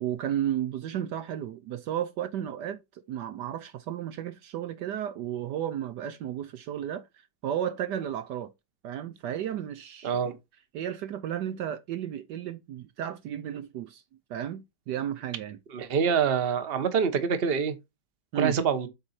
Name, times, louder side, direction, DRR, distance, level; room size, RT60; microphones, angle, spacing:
voice 1, 0.0-7.1 7.4-8.5 8.8-10.4 10.7-14.0 14.3-15.6 18.3-18.6, right 10 dB, 70° right, 1.2 m, -33 dB
voice 2, 15.7-17.8 18.4-18.9, right 6 dB, 40° right, 1.1 m, -25 dB
7.8 x 4.5 x 4.2 m
omnidirectional pair, 2.0 m